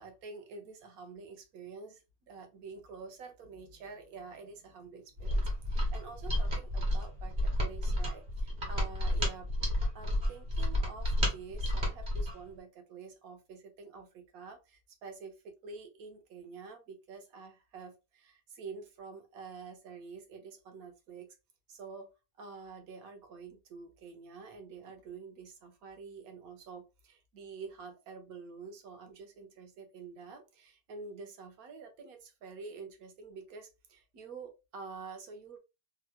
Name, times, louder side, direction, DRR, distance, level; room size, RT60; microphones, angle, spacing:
voice 1, 0.0-9.5 9.9-21.3 21.7-22.1 22.4-35.6, right 4 dB, 80° right, 5 dB, 1.3 m, -48 dB
Mechanisms, 5.2-12.4, left 1 dB, 40° right, 1.3 m, -31 dB
3.6 x 2.9 x 2.2 m, 0.27 s
omnidirectional pair, 1.5 m